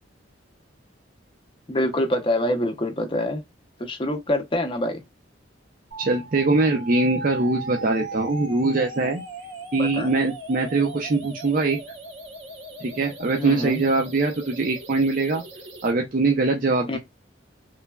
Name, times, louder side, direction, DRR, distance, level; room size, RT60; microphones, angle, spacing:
voice 1, 1.7-3.4 3.8-5.0 9.8-10.1 13.4-13.8 16.9-17.0, left 1 dB, 25° left, 0.6 m, -25 dB
sound 1, 5.9-15.9, right 2 dB, 75° right, 0.9 m, -38 dB
voice 2, 6.0-9.2 9.7-11.8 12.8-15.4 15.8-17.0, right 3 dB, 45° right, 0.5 m, -22 dB
3.1 x 2.1 x 2.2 m
head